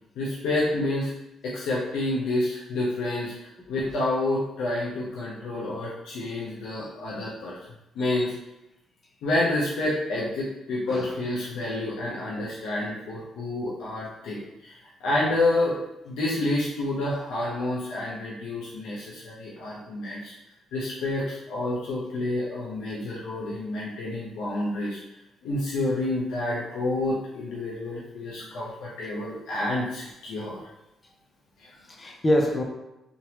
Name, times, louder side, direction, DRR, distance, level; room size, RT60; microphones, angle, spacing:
voice 1, 0.1-1.1 1.4-7.6 7.9-8.4 9.2-14.7 15.0-15.8 16.0-20.3 20.7-25.0 25.4-30.6 31.6-31.7, left 2 dB, 85° left, -6 dB, 0.8 m, -29 dB
voice 2, 31.9-32.6, equal, 25° left, 1 dB, 0.7 m, -27 dB
3.7 x 3.0 x 2.9 m, 0.93 s
cardioid pair, 90°, 0 cm